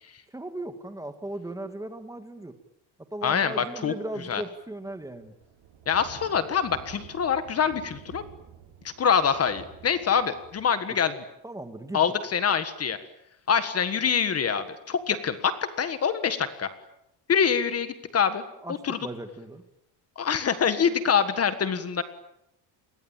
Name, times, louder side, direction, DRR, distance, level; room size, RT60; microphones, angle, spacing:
voice 1, 0.3-2.5 3.1-5.3 11.4-12.0 18.6-19.6, right 1 dB, 5° right, 8 dB, 1.8 m, -37 dB
voice 2, 3.2-3.9 4.3-4.4 5.9-8.2 9.0-11.1 11.9-13.0 13.5-16.7 17.3-18.4 18.8-19.0 20.2-22.0, left 7 dB, 30° left, 11 dB, 1.6 m, -25 dB
sound 1, 4.6-10.7, right 8 dB, 70° right, 7.3 m, -49 dB
29.0 x 22.5 x 9.0 m, 0.81 s
cardioid pair, 170°, 49 cm